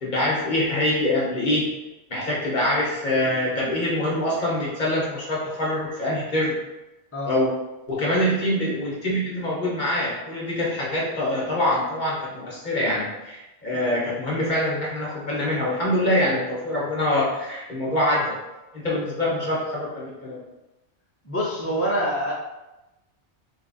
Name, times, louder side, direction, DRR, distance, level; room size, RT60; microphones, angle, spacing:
voice 1, 0.0-1.7 2.1-6.6 7.2-7.5 7.9-18.4 18.7-20.4, left 1 dB, 45° left, -5 dB, 1.0 m, -24 dB
voice 2, 21.2-22.3, equal, 15° left, -6 dB, 0.7 m, -25 dB
3.3 x 2.4 x 3.9 m, 1.0 s
omnidirectional pair, 1.2 m